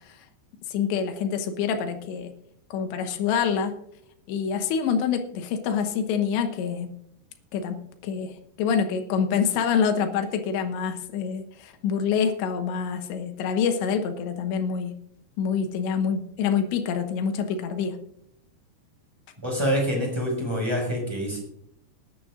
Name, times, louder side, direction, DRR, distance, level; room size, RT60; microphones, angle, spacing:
voice 1, 0.7-2.3 2.7-3.7 4.3-6.9 7.5-14.9 15.4-18.0, left 7 dB, 85° left, 6 dB, 3.4 m, -26 dB
voice 2, 19.4-21.4, equal, 5° right, -1 dB, 4.7 m, -26 dB
20.0 x 11.0 x 2.5 m, 0.73 s
omnidirectional pair, 5.0 m